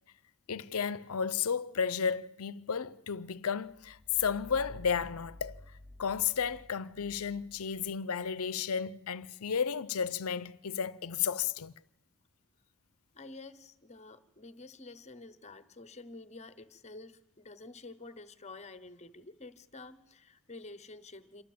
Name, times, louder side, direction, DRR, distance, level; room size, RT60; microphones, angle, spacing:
voice 1, 0.5-5.6 6.0-11.7, left 7 dB, 75° left, 0.6 m, -33 dB
sound 1, 3.6-8.3, left 1 dB, 55° right, 2.7 m, -52 dB
voice 2, 13.1-21.4, left 3 dB, 30° left, 1.0 m, -49 dB
27.5 x 12.5 x 7.7 m
head